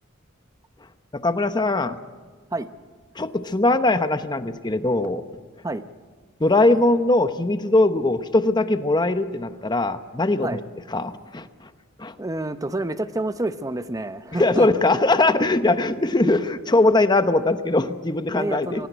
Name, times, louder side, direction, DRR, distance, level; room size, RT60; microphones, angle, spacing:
voice 1, 1.1-2.0 3.2-5.2 6.4-10.5 10.9-11.5 12.0-12.1 14.4-18.8, left 2 dB, 20° left, 10 dB, 0.9 m, -21 dB
voice 2, 12.2-14.7 18.3-18.9, right 2 dB, 15° right, 11 dB, 0.8 m, -28 dB
24.0 x 17.5 x 8.2 m, 1.5 s
head